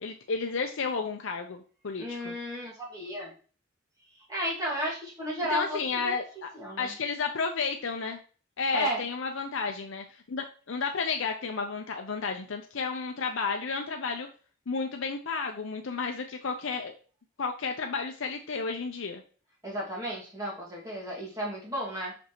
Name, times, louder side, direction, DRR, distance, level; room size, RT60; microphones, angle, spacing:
voice 1, 0.0-2.4 5.5-6.5 6.8-8.2 8.6-14.3 14.7-16.9 17.4-19.2, left 4 dB, 70° left, 4 dB, 0.6 m, -32 dB
voice 2, 2.0-3.3 4.3-6.2 6.5-6.9 8.7-9.0 19.6-22.2, equal, 15° right, -4 dB, 2.1 m, -33 dB
6.1 x 5.2 x 3.0 m, 0.39 s
head